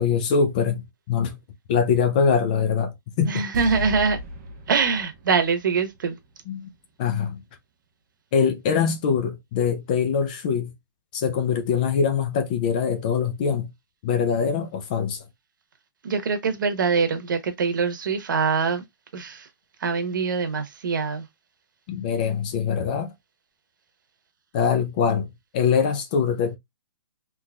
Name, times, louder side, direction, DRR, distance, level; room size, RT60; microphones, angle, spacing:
voice 1, 0.0-1.4 1.7-3.4 6.5-6.7 7.0-7.4 8.3-10.7 11.1-13.7 14.0-15.2 21.9-23.1 24.5-26.6, left 6 dB, 25° left, 0.4 m, -23 dB
voice 2, 3.3-4.2 4.7-6.2 16.0-18.8 19.1-19.5 19.8-21.2, right 5 dB, 65° right, 1.0 m, -24 dB
sound 1, 3.5-6.7 7.0-7.1, left 1 dB, 25° right, 0.7 m, -36 dB
3.5 x 2.9 x 2.3 m
hypercardioid pair, 170°, 11 cm